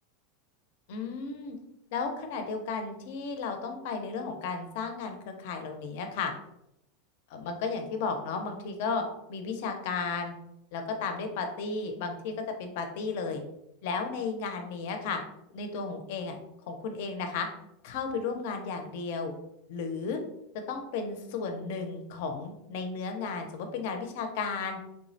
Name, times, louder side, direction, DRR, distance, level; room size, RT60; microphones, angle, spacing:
voice 1, 0.9-1.6 1.9-6.3 7.3-9.0 9.3-10.3 10.7-12.3 12.6-13.4 13.8-15.2 15.5-16.4 16.7-17.5 17.8-19.3 19.7-20.2 20.7-24.8, left 4 dB, 60° left, 5 dB, 0.5 m, -34 dB
3.5 x 2.0 x 2.6 m, 0.82 s
supercardioid pair, 160°, 0 cm